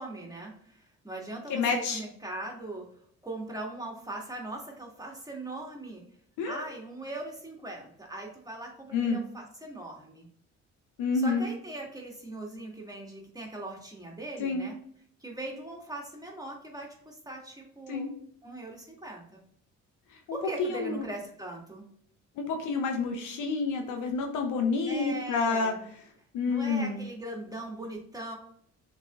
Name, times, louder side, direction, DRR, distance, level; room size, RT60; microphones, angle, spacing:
voice 1, 0.0-2.8 3.2-6.0 6.5-10.3 11.2-14.7 15.2-18.1 18.4-19.4 20.3-21.9 24.9-25.9 26.5-28.4, right 2 dB, 10° right, 0 dB, 1.7 m, -40 dB
voice 2, 1.5-2.0 6.4-6.7 8.9-9.2 11.0-11.5 14.4-14.7 17.9-18.1 20.1-21.1 22.4-25.7 26.3-27.1, left 4 dB, 85° left, 4 dB, 0.8 m, -29 dB
5.9 x 3.3 x 2.4 m, 0.65 s
cardioid pair, 80°, 30 cm